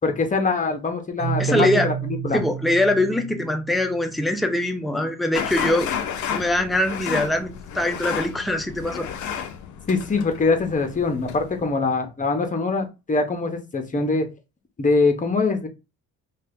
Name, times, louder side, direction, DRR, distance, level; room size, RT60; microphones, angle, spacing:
voice 1, 0.0-2.4 9.9-14.3 14.8-15.7, left 3 dB, 25° left, 0.8 m, -23 dB
Keyboard (musical), 1.2-4.9, right 9 dB, 35° right, 0.8 m, -31 dB
voice 2, 1.4-1.9 2.3-5.9 6.3-9.1, left 1 dB, ahead, 0.5 m, -23 dB
sound 1, 5.3-11.6, left 8 dB, 75° left, 0.6 m, -32 dB
2.8 x 2.3 x 3.5 m
cardioid pair, 90°, 30 cm